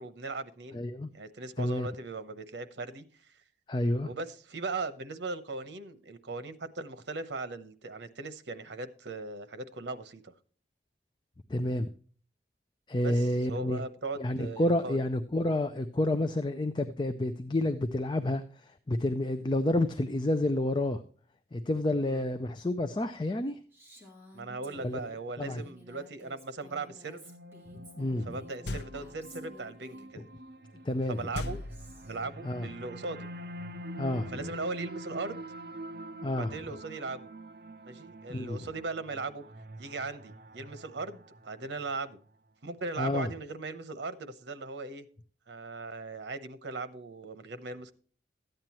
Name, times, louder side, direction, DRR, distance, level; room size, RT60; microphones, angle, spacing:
voice 1, 0.0-0.8 1.1-3.1 4.0-10.3 13.0-15.0 22.1-22.2 24.3-27.2 28.2-30.3 31.1-31.6 32.0-33.3 34.3-35.4 36.4-37.2 37.8-39.4 39.8-42.2 42.6-45.1 45.5-47.9, right 3 dB, 85° right, 11 dB, 0.9 m, -38 dB
voice 2, 0.7-1.1 1.6-1.9 3.7-4.1 11.5-11.9 12.9-13.8 14.2-21.0 21.5-23.6 24.8-25.0 25.4-25.6 28.0-28.3 30.2-30.3 30.8-31.3 32.4-32.7 34.0-34.4 36.2-36.5 38.3-38.7 43.0-43.3, left 1 dB, 25° left, 8 dB, 0.4 m, -29 dB
Female speech woman speaking, 23.7-30.1 30.9-32.3, left 1 dB, 15° right, 2.4 m, -54 dB
sound 1, 26.6-41.9, right 1 dB, 55° right, 0.6 m, -46 dB
sound 2, 28.6-29.3 31.3-32.4, left 2 dB, 70° left, 0.6 m, -38 dB
13.5 x 9.0 x 3.0 m, 0.43 s
head